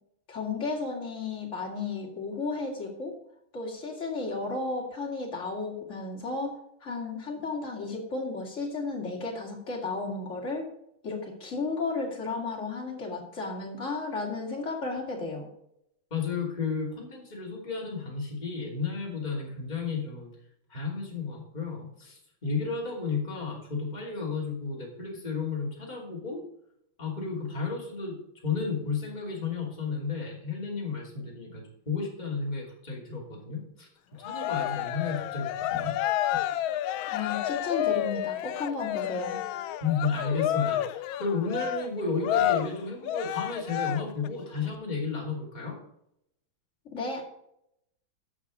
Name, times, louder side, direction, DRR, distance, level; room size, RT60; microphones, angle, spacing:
voice 1, 0.3-3.1 3.5-10.7 11.0-15.5 37.1-39.4 46.8-47.2, left 3 dB, 35° left, -1 dB, 2.9 m, -33 dB
voice 2, 16.1-20.3 20.7-26.4 27.0-28.2 28.4-33.9 34.2-36.0 39.8-45.8, left 4 dB, 20° left, -3 dB, 3.0 m, -32 dB
Cheering, 34.2-44.3, left 12 dB, 80° left, 1.4 m, -30 dB
11.0 x 6.9 x 5.1 m, 0.75 s
omnidirectional pair, 2.2 m